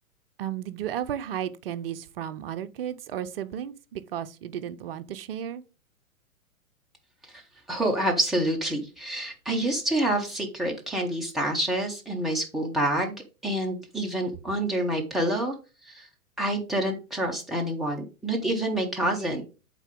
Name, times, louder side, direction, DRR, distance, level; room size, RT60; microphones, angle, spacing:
voice 1, 0.4-5.6, right 10 dB, 45° right, 0.6 m, -34 dB
voice 2, 7.7-15.5 15.9-16.1 16.4-19.4, right 1 dB, ahead, 0.5 m, -27 dB
8.1 x 3.8 x 3.5 m
figure-of-eight pair, 110°, 43 cm